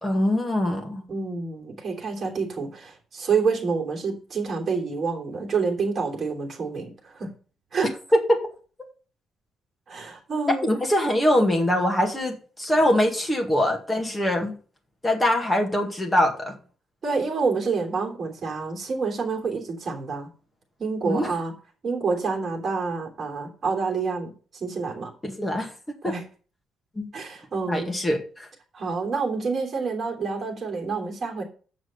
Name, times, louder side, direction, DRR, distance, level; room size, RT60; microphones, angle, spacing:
voice 1, 0.0-1.0 8.1-8.4 10.6-14.5 15.0-16.5 21.0-21.3 25.2-26.1 27.0-27.1 27.7-28.5, left 1 dB, 10° left, 2 dB, 1.9 m, -23 dB
voice 2, 1.1-7.3 7.7-7.9 9.9-10.7 17.0-20.3 20.8-21.5 21.8-25.1 26.0-26.2 27.1-27.9 28.7-31.4, right 4 dB, 30° right, -1 dB, 3.2 m, -28 dB
7.6 x 6.1 x 6.5 m, 0.38 s
cardioid pair, 170°, 0 cm